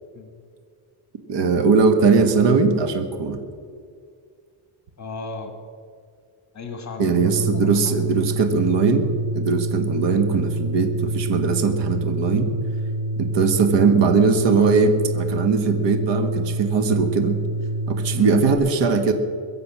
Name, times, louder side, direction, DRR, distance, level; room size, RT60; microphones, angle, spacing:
voice 1, 1.3-3.4 7.0-9.1 9.3-12.5 13.2-17.4 17.9-19.1, right 5 dB, 55° right, 8 dB, 1.6 m, -20 dB
voice 2, 5.0-5.5 6.5-7.7 18.1-18.4, left 4 dB, 35° left, 6 dB, 1.8 m, -35 dB
sound 1, 7.1-18.6, right 1 dB, 30° right, 2.3 m, -27 dB
22.5 x 7.6 x 6.1 m, 2.1 s
cardioid pair, 110°, 50 cm